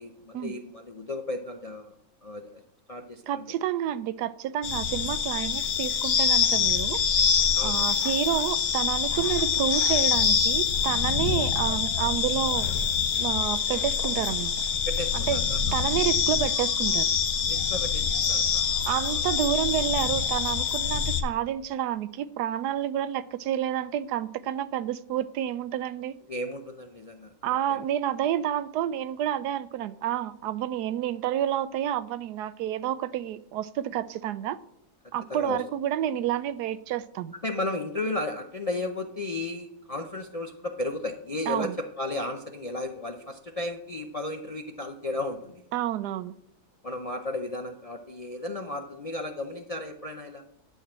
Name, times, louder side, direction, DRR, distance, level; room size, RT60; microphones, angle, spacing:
voice 1, 0.0-1.9 2.2-2.6 2.9-3.5 7.5-7.8 14.9-15.6 17.5-19.2 26.3-27.3 27.7-27.8 35.3-35.6 37.4-45.6 46.8-50.4, left 2 dB, 55° left, 0.4 m, -34 dB
voice 2, 3.3-7.0 7.6-12.7 13.2-14.5 15.1-15.4 15.7-17.1 18.9-26.2 27.4-34.6 35.1-37.3 41.5-41.8 45.7-46.3, right 11 dB, 90° right, 1.2 m, -29 dB
sound 1, 4.6-21.2, left 7 dB, 70° left, 1.5 m, -25 dB
12.0 x 4.6 x 7.4 m
omnidirectional pair, 1.7 m